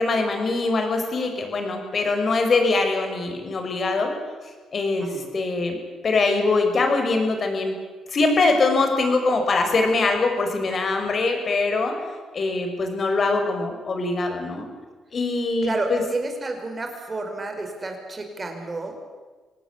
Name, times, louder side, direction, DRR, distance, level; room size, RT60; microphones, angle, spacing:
voice 1, 0.0-4.1 4.7-5.8 6.0-7.7 8.1-12.0 12.3-14.7 15.1-16.0, left 3 dB, 45° left, 5 dB, 5.9 m, -23 dB
voice 2, 15.6-19.0, right 2 dB, 30° right, 4 dB, 5.6 m, -30 dB
26.0 x 18.5 x 8.5 m, 1.4 s
cardioid pair, 90°, 0 cm